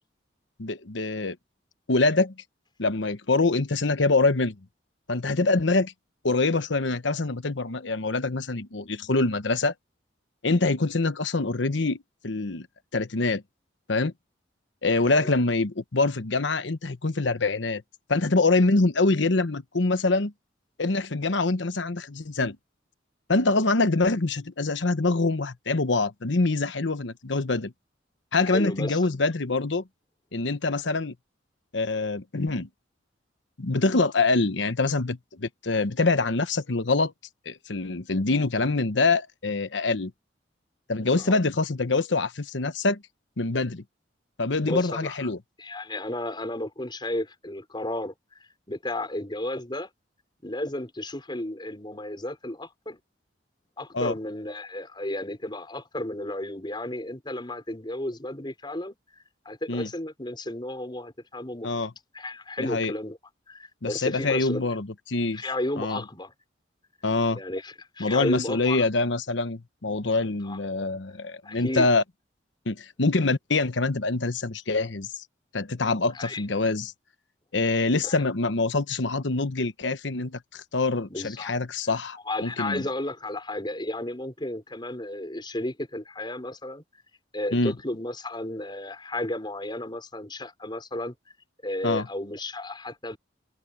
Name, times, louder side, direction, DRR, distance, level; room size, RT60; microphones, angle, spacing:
voice 1, 0.6-1.4 1.9-2.3 2.8-4.6 5.1-5.9 6.2-9.7 10.4-12.0 12.2-12.7 12.9-13.4 13.9-14.1 14.8-17.8 18.1-20.3 20.8-22.6 23.3-27.7 28.3-29.8 30.3-31.1 31.7-32.7 33.6-37.1 37.5-40.1 40.9-43.0 43.4-43.8 44.4-45.4 53.9-54.1 59.7-59.9 61.6-61.9 62.6-62.9 63.8-65.5 65.8-66.0 67.0-67.4 68.0-72.0 72.7-75.2 75.5-76.9 77.5-82.8 87.5-87.7 91.8-92.1, left 3 dB, 75° left, 1.1 m, -25 dB
voice 2, 28.5-29.0 41.2-41.4 44.6-45.1 45.6-48.1 48.7-49.9 50.4-53.0 53.8-59.0 59.5-61.7 62.1-63.2 63.5-64.7 65.3-66.3 67.3-68.8 70.4-70.6 71.4-71.9 76.1-76.4 78.0-78.2 81.1-81.5 82.3-86.8 87.3-91.1 91.6-93.2, left 1 dB, 25° left, 5.3 m, -33 dB
head